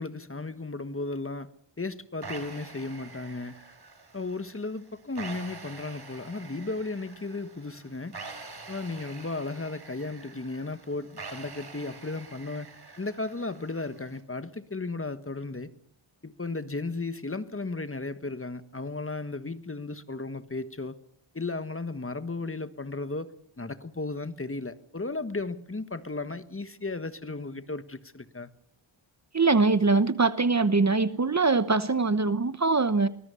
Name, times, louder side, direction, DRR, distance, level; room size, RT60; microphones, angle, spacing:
voice 1, 0.0-1.5 1.8-3.6 4.1-8.2 8.7-12.7 13.0-15.7 16.2-21.0 21.3-23.3 23.6-28.5, left 3 dB, 25° left, 1.4 m, -35 dB
sound 1, 2.2-14.2, right 4 dB, 50° right, 4.9 m, -46 dB
voice 2, 29.3-33.1, right 3 dB, 35° right, 1.0 m, -23 dB
24.5 x 21.0 x 6.9 m
wide cardioid pair, 90°, 49 cm